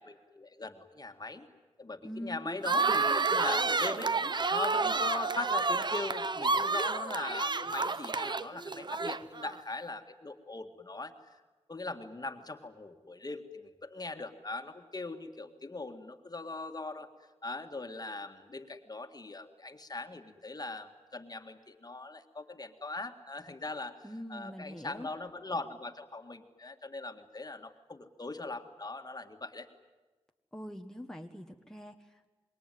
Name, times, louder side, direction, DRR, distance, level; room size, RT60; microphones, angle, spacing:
voice 1, 0.0-1.5 1.8-4.1 4.5-11.1 11.7-17.1 17.4-29.7, left 2 dB, 35° left, 6 dB, 1.9 m, -40 dB
voice 2, 2.0-2.6 24.0-25.1 30.5-32.3, equal, 5° left, 3 dB, 1.4 m, -43 dB
sound 1, 2.6-9.5, right 4 dB, 45° right, 0.8 m, -30 dB
26.5 x 22.0 x 9.3 m, 1.2 s
wide cardioid pair, 70°, 11 cm